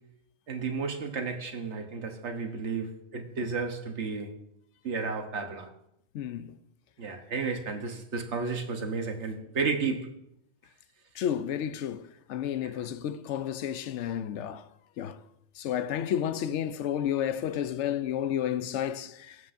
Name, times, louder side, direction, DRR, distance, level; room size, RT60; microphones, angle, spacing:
voice 1, 0.5-4.4 4.8-5.7 7.0-10.1, right 4 dB, 75° right, 1.4 m, -32 dB
voice 2, 6.1-6.6 11.2-14.6 15.0-15.2 15.6-19.4, left 10 dB, 80° left, 0.9 m, -31 dB
15.5 x 7.8 x 2.6 m
omnidirectional pair, 1.2 m